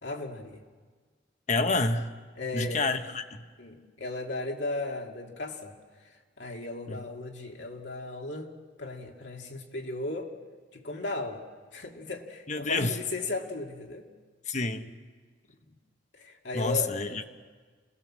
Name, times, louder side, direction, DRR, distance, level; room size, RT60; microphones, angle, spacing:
voice 1, 0.0-0.6 2.4-2.9 3.6-5.8 6.0-8.5 8.8-10.3 10.7-11.4 11.7-14.1 16.1-17.2, left 2 dB, 75° left, 1 dB, 2.5 m, -36 dB
voice 2, 1.5-2.1 2.5-3.4 6.9-7.0 12.5-13.0 14.5-14.9 16.5-17.2, left 3 dB, 40° left, 8 dB, 1.2 m, -28 dB
29.0 x 18.5 x 7.5 m, 1.5 s
head